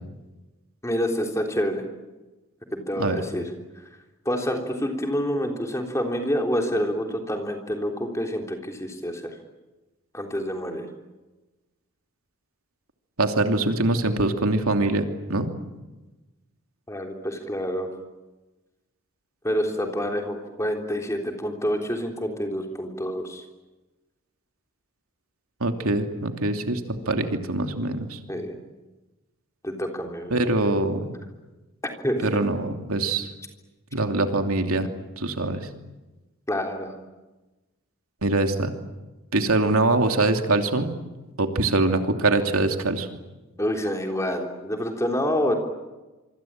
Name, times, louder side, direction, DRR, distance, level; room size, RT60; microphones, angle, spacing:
voice 1, 0.8-1.8 2.7-3.4 4.2-9.4 10.1-10.8 16.9-17.9 19.4-23.4 28.3-28.5 29.6-30.4 32.0-32.3 36.5-37.0 43.6-45.5, equal, 15° left, 3 dB, 3.5 m, -27 dB
voice 2, 13.2-15.5 25.6-28.2 30.3-31.1 32.2-33.3 33.9-34.9 35.2-35.6 38.2-38.7 39.3-40.9 41.4-43.1, right 2 dB, 85° right, 5 dB, 2.9 m, -23 dB
26.0 x 25.5 x 8.9 m, 1.1 s
head